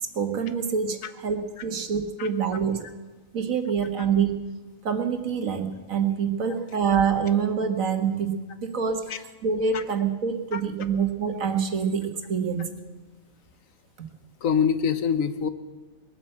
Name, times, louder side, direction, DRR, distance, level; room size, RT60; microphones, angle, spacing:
voice 1, 0.0-2.8 3.3-4.3 4.8-8.3 8.6-9.1 9.4-12.7, right 6 dB, 75° right, 6 dB, 1.8 m, -26 dB
voice 2, 14.4-15.5, left 7 dB, 75° left, 12 dB, 1.3 m, -25 dB
20.5 x 8.9 x 7.7 m, 1.2 s
omnidirectional pair, 1.4 m